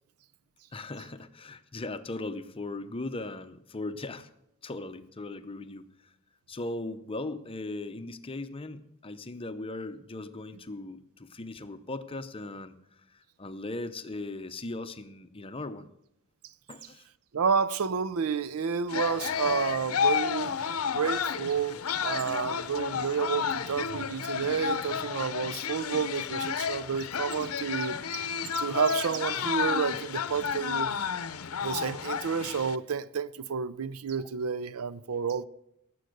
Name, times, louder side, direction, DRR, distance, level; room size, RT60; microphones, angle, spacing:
voice 1, 0.7-4.3 4.6-5.9 6.5-15.9 16.7-17.0, left 2 dB, 25° left, 0.7 m, -38 dB
voice 2, 17.3-20.7 20.9-28.2 28.6-30.9 31.6-35.4, right 6 dB, 85° right, 0.5 m, -30 dB
sound 1, 18.9-32.8, left 7 dB, 80° left, 0.7 m, -31 dB
18.0 x 7.8 x 6.5 m
head